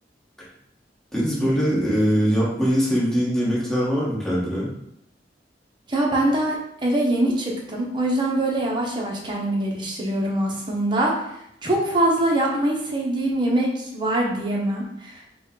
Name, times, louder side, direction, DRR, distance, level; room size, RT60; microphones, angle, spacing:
voice 1, 1.1-4.7, equal, 5° left, -8 dB, 1.3 m, -22 dB
voice 2, 5.9-15.2, right 1 dB, 25° right, -2 dB, 0.8 m, -23 dB
5.1 x 2.3 x 3.7 m, 0.75 s
head